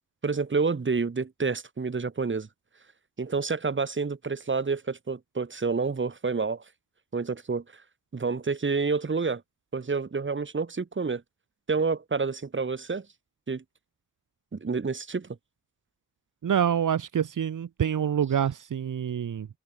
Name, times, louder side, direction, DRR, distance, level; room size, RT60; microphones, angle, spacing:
voice 1, 0.2-2.5 3.2-6.6 7.1-7.6 8.1-9.4 9.7-11.2 11.7-13.0 13.5-13.6 14.5-15.3, right 4 dB, 40° right, 3.1 m, -28 dB
voice 2, 16.4-19.5, right 8 dB, 85° right, 1.3 m, -26 dB
wide cardioid pair, 145°, 31 cm